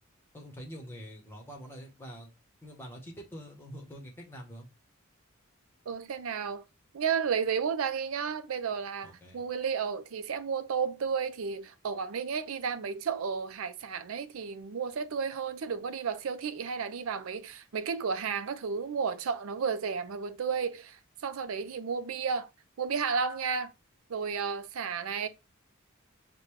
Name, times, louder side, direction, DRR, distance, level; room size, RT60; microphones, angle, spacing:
voice 1, 0.3-2.3 2.6-4.7 9.0-9.4, equal, 10° left, 1.0 m, -45 dB
voice 2, 5.9-6.6 6.9-22.5 22.8-23.7 24.1-25.3, right 6 dB, 85° right, 0.5 m, -32 dB
5.1 x 2.2 x 3.1 m
head